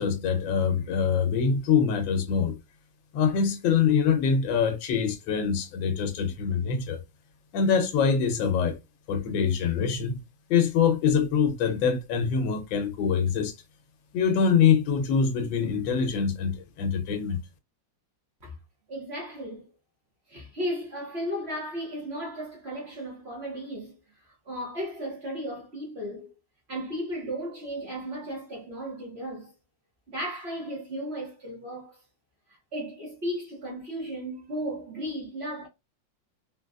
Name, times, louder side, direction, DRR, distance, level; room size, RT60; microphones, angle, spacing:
voice 1, 0.0-2.6 3.1-7.0 7.5-8.8 9.1-10.2 10.5-13.5 14.1-17.4, left 6 dB, 85° left, 1.4 m, -24 dB
voice 2, 18.9-19.7 20.3-26.3 26.7-29.5 30.1-32.0 32.5-35.7, equal, 45° right, 1.0 m, -35 dB
3.8 x 2.3 x 2.3 m
omnidirectional pair, 2.0 m